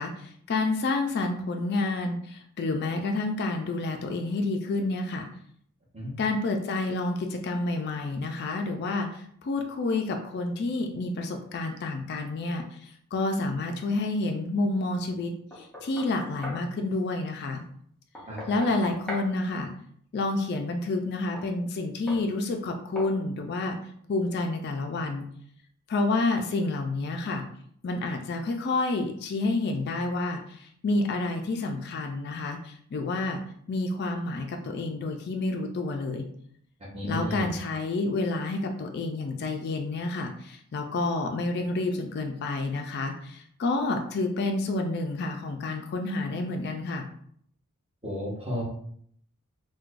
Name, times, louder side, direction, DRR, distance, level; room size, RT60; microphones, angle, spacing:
voice 1, 0.0-5.3 6.2-17.6 18.5-19.7 20.1-23.8 24.1-25.2 25.9-27.4 27.8-33.4 33.7-36.3 37.0-47.1, left 2 dB, 45° left, 4 dB, 0.3 m, -29 dB
Knock, 15.5-16.7 18.1-19.3 21.3-21.5 22.1-22.3 23.0-23.2, left 1 dB, 5° left, 0.6 m, -39 dB
voice 2, 36.9-37.5 48.0-48.6, equal, 25° right, -4 dB, 1.1 m, -33 dB
4.5 x 2.2 x 2.5 m, 0.65 s
head